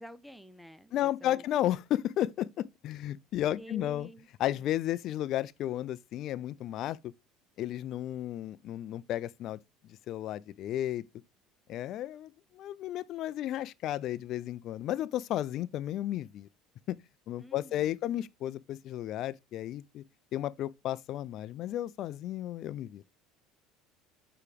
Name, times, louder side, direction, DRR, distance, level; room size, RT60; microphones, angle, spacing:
voice 1, 0.0-1.4 3.6-4.7 17.4-18.1, equal, ahead, 0.6 m, -50 dB
voice 2, 0.9-4.1 4.4-7.1 7.6-11.0 11.7-16.5 16.9-17.0 17.3-20.0 20.3-23.0, left 12 dB, 55° left, 0.4 m, -33 dB
4.8 x 4.8 x 5.0 m
cardioid pair, 120°, 0 cm